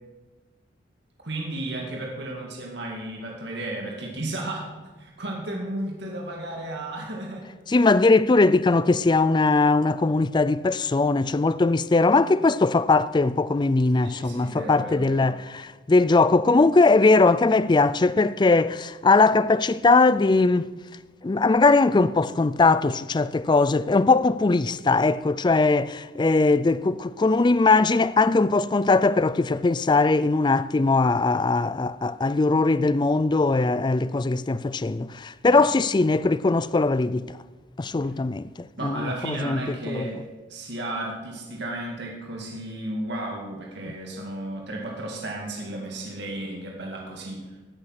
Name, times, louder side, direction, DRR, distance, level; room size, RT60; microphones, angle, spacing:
voice 1, 1.2-4.7 5.0-7.5 14.0-15.3 35.5-35.7 38.8-40.2 40.5-47.6, right 1 dB, 65° right, 2.3 m, -33 dB
voice 2, 7.7-20.7 21.2-37.3 37.8-40.1 43.9-44.0, left 3 dB, 25° left, 0.4 m, -20 dB
18.5 x 9.5 x 5.8 m
head